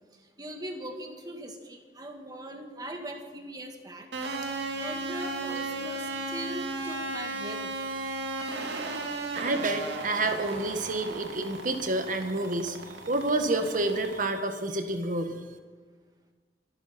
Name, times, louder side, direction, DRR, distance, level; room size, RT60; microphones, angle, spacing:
voice 1, 0.4-4.1 4.4-7.9, right 1 dB, 25° right, 3 dB, 1.9 m, -40 dB
sound 1, 4.1-14.2, right 2 dB, 80° right, 2.2 m, -35 dB
voice 2, 9.3-12.8 13.1-15.4, right 2 dB, 50° right, 7 dB, 1.5 m, -29 dB
26.0 x 12.0 x 4.4 m, 1.5 s
head